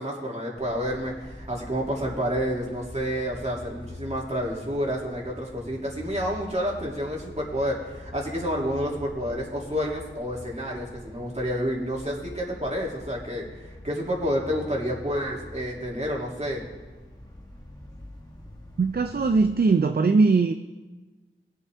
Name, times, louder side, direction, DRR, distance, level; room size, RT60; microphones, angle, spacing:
voice 1, 0.0-16.6, equal, 30° right, -3 dB, 3.1 m, -29 dB
sound 1, 0.5-19.6, left 1 dB, 20° left, 1.7 m, -44 dB
voice 2, 18.8-20.5, right 4 dB, 50° right, 8 dB, 0.5 m, -20 dB
20.0 x 8.4 x 3.6 m, 1.3 s
wide cardioid pair, 50°, 21 cm